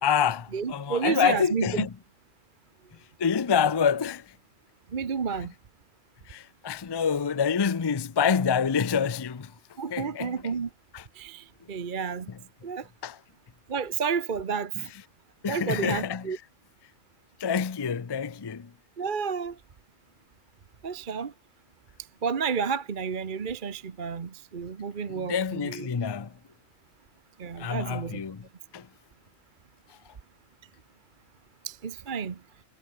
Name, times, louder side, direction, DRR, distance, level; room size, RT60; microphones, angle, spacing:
voice 1, 0.0-1.9 3.2-4.3 6.3-9.5 9.9-10.6 10.9-11.0 12.3-12.4 13.0-13.2 14.8-14.9 15.4-16.4 17.4-18.7 25.1-26.3 27.6-28.5 28.7-28.9 29.9-30.0, left 7 dB, 30° left, 0.4 m, -27 dB
voice 2, 0.5-1.7 4.9-5.5 9.8-10.7 11.1-12.3 12.6-12.9 13.7-14.9 15.5-16.4 19.0-19.6 20.8-21.3 22.2-25.9 27.4-28.2 31.6-32.4, right 6 dB, 40° right, 1.1 m, -31 dB
omnidirectional pair, 1.3 m